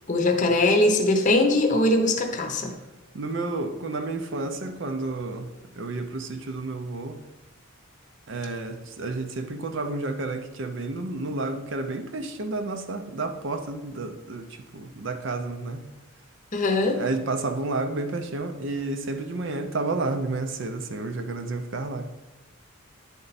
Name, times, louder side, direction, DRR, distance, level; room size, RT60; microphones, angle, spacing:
voice 1, 0.1-2.7 16.5-17.0, left 2 dB, 35° left, 4 dB, 0.7 m, -21 dB
voice 2, 3.1-7.2 8.3-15.8 16.8-22.1, right 3 dB, 55° right, 6 dB, 0.5 m, -31 dB
9.8 x 4.4 x 4.1 m, 1.0 s
head